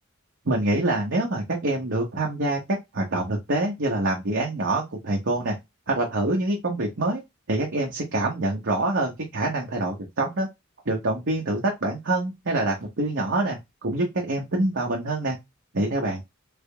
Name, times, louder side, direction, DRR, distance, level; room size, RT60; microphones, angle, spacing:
voice 1, 0.5-2.6 2.9-5.6 5.9-7.2 7.5-10.5 10.9-15.3 15.7-16.2, right 2 dB, 60° right, -1 dB, 0.9 m, -25 dB
3.5 x 3.4 x 2.2 m, 0.19 s
head